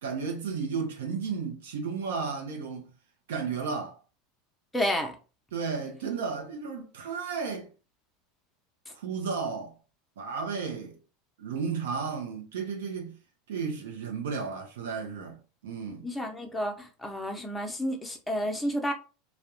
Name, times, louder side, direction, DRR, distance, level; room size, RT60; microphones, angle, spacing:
voice 1, 0.0-2.9 3.3-4.0 5.5-7.7 8.9-9.7 10.2-11.0 11.4-13.2 13.5-16.0, right 5 dB, 90° right, 0.5 m, -33 dB
voice 2, 4.7-5.2 16.0-18.9, equal, 5° left, 0.6 m, -30 dB
2.3 x 2.1 x 2.9 m
supercardioid pair, 120°, 0 cm